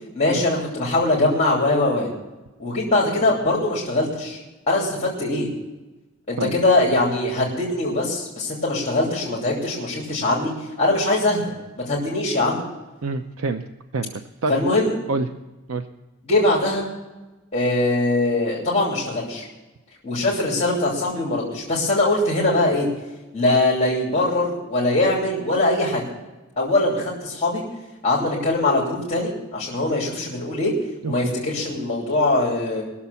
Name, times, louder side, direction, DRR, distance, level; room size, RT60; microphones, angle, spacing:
voice 1, 0.1-2.1 2.6-4.4 4.7-5.5 6.3-10.5 10.8-11.4 11.9-12.6 14.5-15.0 16.2-16.9 17.5-19.4 20.0-22.9 23.3-26.0 26.6-27.6 28.0-30.7 31.0-32.8, left 2 dB, 30° left, -5 dB, 3.1 m, -22 dB
voice 2, 13.0-13.6 13.9-14.5 15.1-15.3 15.7-15.8 31.0-31.3, right 3 dB, 90° right, 8 dB, 0.7 m, -26 dB
21.0 x 7.2 x 7.0 m, 1.1 s
head